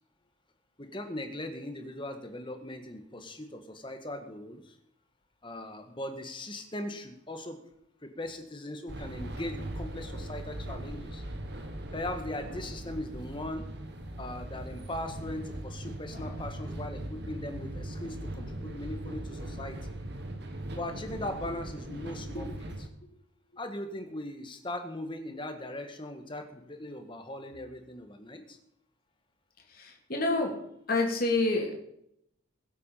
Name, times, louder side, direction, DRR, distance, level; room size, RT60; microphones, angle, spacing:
voice 1, 0.8-4.8 5.4-7.6 8.0-11.2 11.9-13.7 14.2-19.8 20.7-22.5 23.6-28.6, left 1 dB, 25° left, 6 dB, 1.6 m, -39 dB
sound 1, 8.9-22.9, right 1 dB, 55° right, 1.7 m, -39 dB
voice 2, 16.1-16.5 21.5-21.6 29.7-30.6 30.9-31.8, left 2 dB, 45° left, 1 dB, 3.1 m, -29 dB
22.0 x 8.2 x 5.7 m, 0.76 s
head